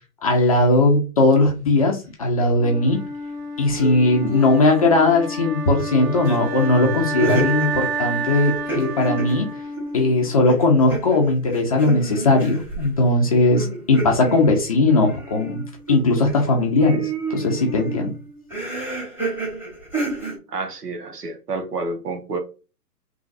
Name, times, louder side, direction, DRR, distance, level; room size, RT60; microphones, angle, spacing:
voice 1, 0.2-3.0 3.6-9.5 9.9-15.6 15.9-18.1, left 2 dB, 25° left, 0.5 m, -18 dB
Wind instrument woodwind instrument, 2.6-10.6, right 2 dB, 60° right, 2.0 m, -29 dB
sound 1, 3.8-4.9 5.1-5.2 6.0-10.1 10.4-12.9 13.5-16.5 16.8-20.4, right 3 dB, 5° right, 1.2 m, -30 dB
voice 2, 20.5-22.4, right 3 dB, 80° right, 1.2 m, -29 dB
3.6 x 3.1 x 2.6 m
hypercardioid pair, 135°, 47 cm